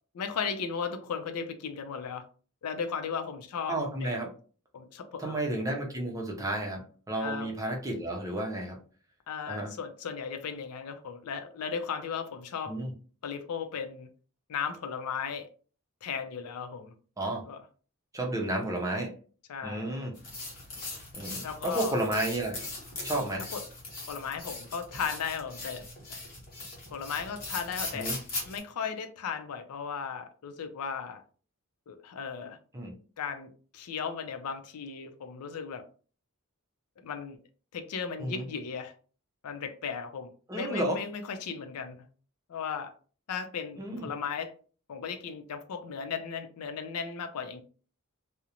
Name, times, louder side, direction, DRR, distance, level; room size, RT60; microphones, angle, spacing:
voice 1, 0.1-2.2 2.6-4.1 4.7-5.4 7.2-7.5 9.3-12.8 13.2-14.1 14.5-15.5 16.0-16.9 17.5-17.6 19.5-20.1 21.4-22.0 23.5-23.6 24.1-25.8 26.1-26.2 26.9-28.1 28.4-31.2 31.9-32.6 33.2-35.8 37.0-37.4 37.7-38.9 39.4-42.1 42.5-42.9 43.3-44.5 44.9-47.6, left 6 dB, 90° left, 0.4 m, -36 dB
voice 2, 3.7-4.3 5.2-8.8 9.5-9.7 12.7-12.9 17.2-17.4 18.1-19.1 19.6-20.1 21.1-22.6 23.0-23.5 27.9-28.2 32.7-32.9 38.2-38.4 40.5-41.0 43.8-44.1, right 1 dB, 15° right, 0.5 m, -32 dB
sound 1, 20.1-28.6, left 2 dB, 40° left, 0.9 m, -40 dB
2.4 x 2.0 x 2.8 m
head